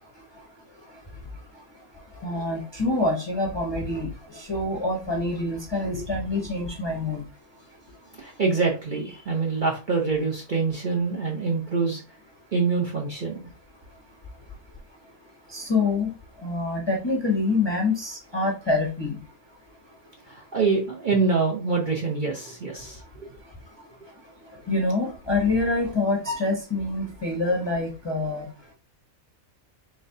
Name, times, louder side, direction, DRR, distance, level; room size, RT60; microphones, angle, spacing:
voice 1, 2.2-4.1 4.3-7.2 15.5-16.1 16.4-19.1 24.7-28.5, left 2 dB, 25° left, -1 dB, 0.7 m, -26 dB
voice 2, 8.2-12.0 12.5-13.5 20.3-23.0, right 4 dB, 45° right, -1 dB, 0.7 m, -25 dB
4.0 x 3.7 x 2.6 m, 0.31 s
omnidirectional pair, 1.4 m